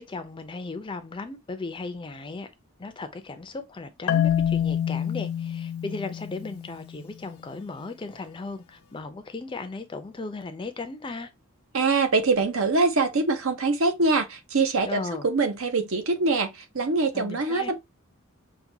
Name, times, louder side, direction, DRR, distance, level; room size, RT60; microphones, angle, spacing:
voice 1, 0.0-2.5 2.8-11.3 14.8-15.3 17.1-17.7, left 3 dB, 25° left, 0.4 m, -36 dB
Marimba xylophone, 4.1-7.1, left 9 dB, 80° left, 0.5 m, -27 dB
voice 2, 11.7-17.8, right 3 dB, 70° right, 0.7 m, -24 dB
5.8 x 2.2 x 2.7 m
head